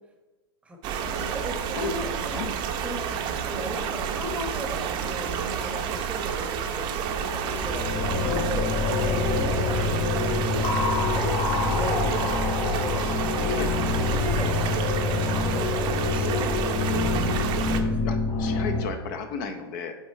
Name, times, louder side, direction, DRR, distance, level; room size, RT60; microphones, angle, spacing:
voice 1, 0.6-2.4 2.8-7.9 8.2-8.7 9.0-9.9 10.2-10.7 11.0-13.0 13.3-17.3 17.7-18.0, equal, 10° right, 3 dB, 0.9 m, -37 dB
sound 1, 0.8-17.8, right 7 dB, 35° right, 0.7 m, -30 dB
sound 2, 7.3-18.8, left 4 dB, 30° left, 2.0 m, -26 dB
voice 2, 17.6-20.0, left 5 dB, 50° left, 7 dB, 0.7 m, -34 dB
8.5 x 3.5 x 4.3 m, 1.1 s
hypercardioid pair, 135°, 14 cm